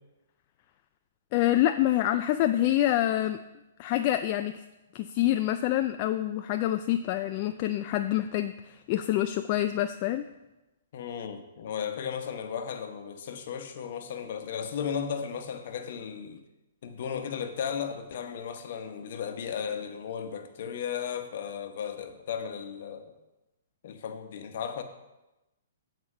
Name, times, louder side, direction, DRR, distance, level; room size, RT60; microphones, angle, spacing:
voice 1, 1.3-3.4 3.8-4.6 4.9-10.2, left 13 dB, 40° left, 0.3 m, -26 dB
voice 2, 10.9-16.4 16.8-23.2 23.8-24.8, left 7 dB, 60° left, 0.9 m, -35 dB
8.2 x 4.2 x 6.0 m
hypercardioid pair, 130°, 0 cm